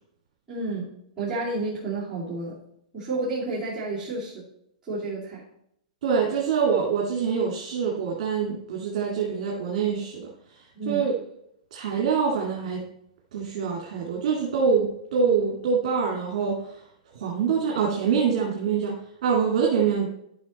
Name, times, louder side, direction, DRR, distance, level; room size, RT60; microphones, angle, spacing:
voice 1, 0.5-0.9 1.2-2.6 2.9-4.4 4.9-5.4 10.7-11.0, right 2 dB, 5° right, -13 dB, 2.7 m, -30 dB
voice 2, 6.0-10.3 10.9-11.1 11.7-12.8 13.3-16.6 17.1-18.9 19.2-20.1, right 6 dB, 50° right, -2 dB, 2.2 m, -25 dB
11.5 x 5.8 x 4.1 m, 0.74 s
hypercardioid pair, 170°, 4 cm